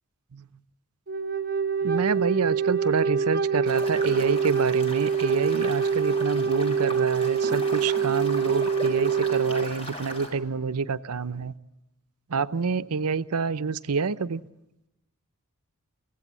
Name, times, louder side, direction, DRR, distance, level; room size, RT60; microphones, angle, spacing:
Wind instrument woodwind instrument, 1.1-9.7, right 6 dB, 40° right, 1.3 m, -25 dB
voice 1, 1.8-11.5 12.3-14.4, right 5 dB, 85° right, 14 dB, 0.7 m, -27 dB
sound 1, 3.7-10.3, equal, 25° left, 4.6 m, -38 dB
24.5 x 17.0 x 8.8 m, 0.92 s
head